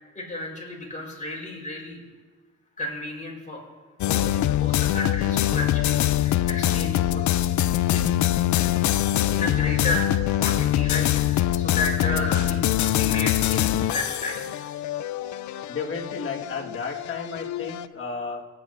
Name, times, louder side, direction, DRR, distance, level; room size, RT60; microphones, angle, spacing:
voice 1, 0.1-2.0 2.8-3.6 4.0-7.4 7.9-8.1 9.3-10.0 10.3-14.5, left 2 dB, 25° left, -2 dB, 4.5 m, -33 dB
sound 1, 4.0-17.9, left 13 dB, 70° left, 0.5 m, -24 dB
voice 2, 15.7-18.4, left 4 dB, 45° left, -1 dB, 1.8 m, -33 dB
22.0 x 9.6 x 2.6 m, 1.4 s
cardioid pair, 90°, 30 cm